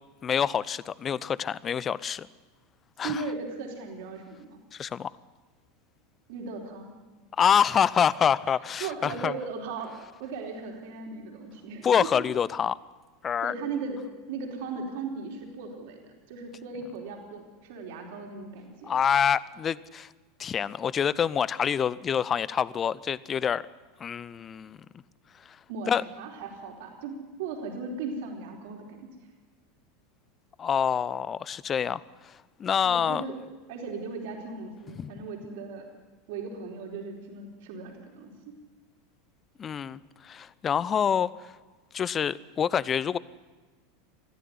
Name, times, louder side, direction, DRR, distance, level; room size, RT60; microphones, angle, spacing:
voice 1, 0.2-2.3 3.0-3.2 4.7-5.1 7.4-9.3 11.8-12.8 13.2-13.5 18.8-20.1 20.4-23.6 24.0-24.8 25.5-25.6 25.9-26.0 30.6-32.3 32.6-33.2 35.0-35.1 39.6-41.5 41.9-43.2, left 8 dB, 30° left, 21 dB, 0.6 m, -26 dB
voice 2, 3.0-4.6 6.3-7.0 8.8-12.1 13.4-14.0 14.3-19.0 25.7-29.1 32.8-33.4 33.7-35.9 36.3-38.5, right 4 dB, 60° right, 2 dB, 4.2 m, -37 dB
21.5 x 14.5 x 9.6 m, 1.3 s
figure-of-eight pair, 80°, 0 cm